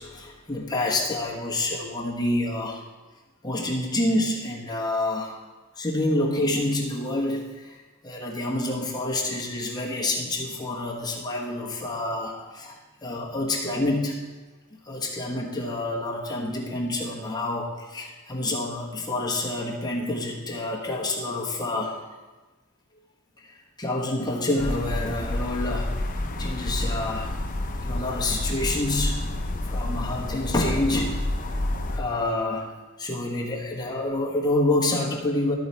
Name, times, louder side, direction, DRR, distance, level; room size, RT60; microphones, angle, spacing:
voice 1, 0.0-2.8 3.4-5.4 5.8-14.2 14.8-21.9 23.4-25.9 26.4-27.4 27.8-31.2 31.9-32.7 33.0-35.5, left 2 dB, 20° left, -3 dB, 1.2 m, -28 dB
sound 1, 24.6-32.0, left 1 dB, 40° left, 0.7 m, -29 dB
13.5 x 4.8 x 4.3 m, 1.2 s
head